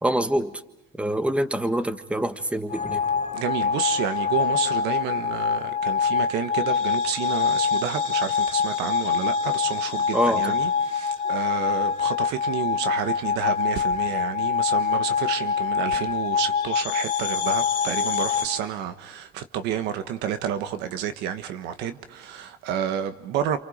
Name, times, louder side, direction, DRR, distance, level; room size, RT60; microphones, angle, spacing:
voice 1, 0.0-0.5 1.0-3.0 10.1-10.5, right 1 dB, 5° right, 1.3 m, -25 dB
sound 1, 2.7-18.5, left 6 dB, 50° left, 3.3 m, -25 dB
voice 2, 3.3-23.6, right 9 dB, 90° right, 1.5 m, -30 dB
28.0 x 28.0 x 5.1 m
cardioid pair, 110°, 17 cm